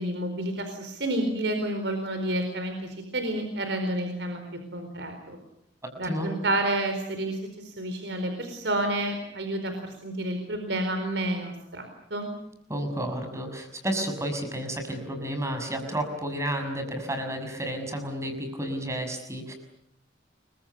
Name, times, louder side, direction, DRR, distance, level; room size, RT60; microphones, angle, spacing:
voice 1, 0.0-4.4 4.7-5.4 6.0-12.3, right 1 dB, 70° right, 6 dB, 4.6 m, -30 dB
voice 2, 12.7-19.5, right 1 dB, 15° right, 6 dB, 6.4 m, -31 dB
30.0 x 24.0 x 7.1 m, 0.76 s
head